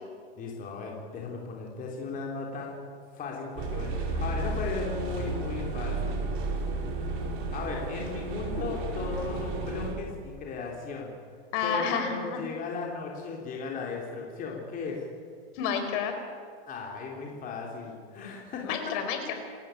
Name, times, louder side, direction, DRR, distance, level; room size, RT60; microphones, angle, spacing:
voice 1, 0.4-2.9 3.1-6.2 7.5-11.1 11.6-15.1 16.7-18.8, left 4 dB, 25° left, -1 dB, 3.8 m, -36 dB
sound 1, 3.6-9.9, right 3 dB, 40° right, 5.6 m, -32 dB
voice 2, 11.5-12.4 15.6-16.1 18.6-19.3, left 7 dB, 45° left, 6 dB, 4.6 m, -30 dB
28.0 x 14.5 x 9.3 m, 2.1 s
supercardioid pair, 145°, 33 cm